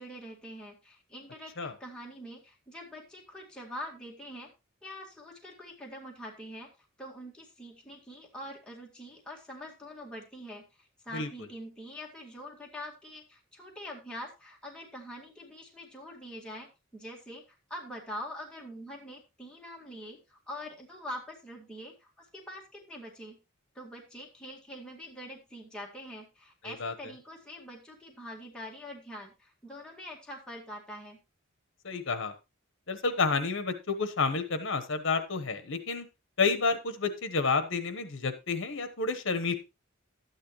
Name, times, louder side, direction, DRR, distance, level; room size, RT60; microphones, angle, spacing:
voice 1, 0.0-4.5 4.8-16.7 16.9-17.4 17.7-23.4 23.7-31.2, equal, 5° left, -3 dB, 2.0 m, -44 dB
voice 2, 31.8-32.3 32.9-36.0 36.4-39.5, left 4 dB, 65° left, 9 dB, 1.1 m, -30 dB
12.0 x 9.6 x 3.1 m, 0.26 s
head